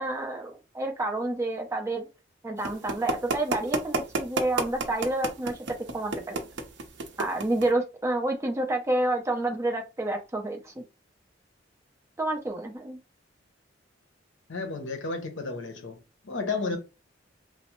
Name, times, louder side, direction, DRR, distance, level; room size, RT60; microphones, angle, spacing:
voice 1, 0.0-2.1 2.4-5.7 5.9-6.5 7.2-10.8 12.2-13.0, right 2 dB, 15° right, 0.5 m, -29 dB
sound 1, 2.6-7.7, right 3 dB, 70° right, 0.6 m, -29 dB
voice 2, 14.5-16.0 16.2-16.8, left 3 dB, 75° left, 0.7 m, -32 dB
3.0 x 2.0 x 3.0 m
head